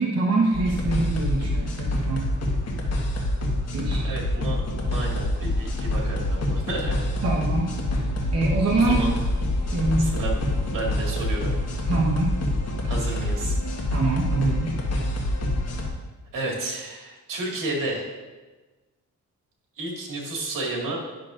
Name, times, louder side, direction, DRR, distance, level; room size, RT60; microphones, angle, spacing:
voice 1, 0.0-2.3 3.7-4.1 7.2-7.8 8.3-9.0 9.7-10.3 11.9-12.4 13.9-14.7, right 3 dB, 50° right, -3 dB, 1.0 m, -24 dB
sound 1, 0.5-15.9, left 1 dB, 50° left, 1.4 m, -26 dB
voice 2, 4.0-7.2 8.7-9.1 10.0-10.4 10.7-11.5 12.9-13.6 16.3-18.1 19.8-21.1, right 2 dB, 80° right, -2 dB, 2.0 m, -32 dB
10.0 x 6.5 x 2.5 m, 1.2 s
cardioid pair, 105°, 32 cm